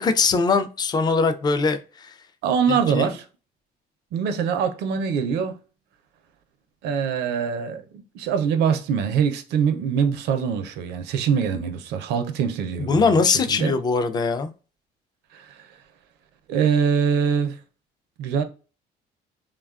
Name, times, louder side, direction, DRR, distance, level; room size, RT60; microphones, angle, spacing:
voice 1, 0.0-2.1 2.7-3.1 12.8-14.5, left 4 dB, 25° left, 0.3 m, -21 dB
voice 2, 2.4-3.3 4.1-5.6 6.8-13.7 15.3-15.7 16.5-17.6 18.2-18.4, right 7 dB, 80° right, 0.5 m, -23 dB
3.3 x 2.3 x 2.3 m
cardioid pair, 110°, 17 cm